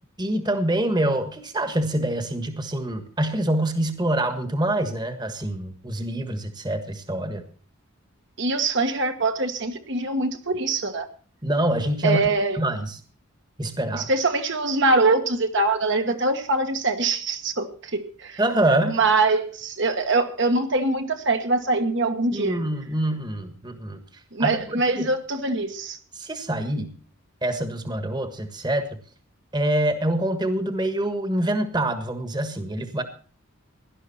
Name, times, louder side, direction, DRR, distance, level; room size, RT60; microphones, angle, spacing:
voice 1, 0.2-7.4 11.4-12.2 12.5-13.0 13.6-14.1 18.4-19.0 22.3-24.0 24.4-25.1 26.1-26.9 27.4-28.9 29.5-33.0, right 1 dB, 20° right, 9 dB, 1.5 m, -25 dB
voice 2, 8.4-11.1 12.0-12.6 13.9-18.4 18.9-22.6 24.3-26.0, right 3 dB, 55° right, 6 dB, 1.5 m, -23 dB
17.5 x 12.0 x 4.2 m, 0.42 s
head